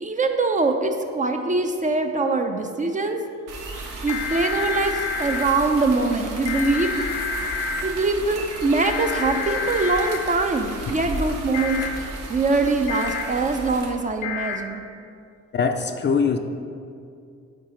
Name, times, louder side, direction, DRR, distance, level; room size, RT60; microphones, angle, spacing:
voice 1, 0.0-3.2 4.0-6.9 7.8-11.8 12.3-14.8, right 3 dB, 25° right, 5 dB, 0.4 m, -23 dB
sound 1, 3.5-13.9, right 1 dB, 85° right, 0.9 m, -35 dB
sound 2, 4.1-5.4 6.5-7.8 8.8-10.2 11.5-11.9 12.9-13.2 14.2-14.6, left 4 dB, 85° left, 0.7 m, -28 dB
voice 2, 15.5-16.4, left 5 dB, 40° left, 7 dB, 0.4 m, -22 dB
4.7 x 4.6 x 5.0 m, 2.4 s
cardioid pair, 90°, 30 cm